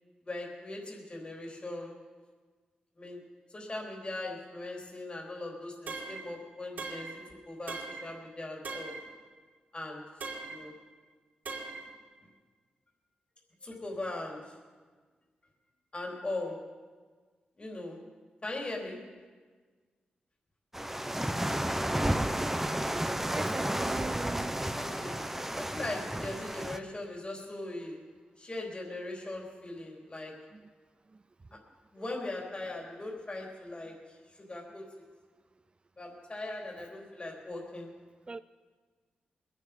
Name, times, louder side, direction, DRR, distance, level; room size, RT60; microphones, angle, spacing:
voice 1, 0.2-2.0 3.0-3.2 3.5-9.0 9.7-10.1 10.5-10.7 13.6-14.5 15.9-16.7 17.6-18.0 18.4-19.1 24.8-25.2 25.6-28.0 28.4-30.5 31.5-31.6 31.9-35.0 36.0-38.0, left 2 dB, 35° left, 3.8 m, -40 dB
sound 1, 5.9-6.3 6.8-7.2 7.7-8.1 8.6-9.1 10.2-10.7 11.5-11.9, right 4 dB, 70° right, 3.4 m, -40 dB
sound 2, 20.7-26.8, right 1 dB, 10° right, 1.0 m, -32 dB
voice 2, 23.3-24.5 30.5-30.6 38.3-38.4, right 3 dB, 35° right, 0.4 m, -39 dB
22.0 x 9.6 x 5.3 m
cardioid pair, 50°, 3 cm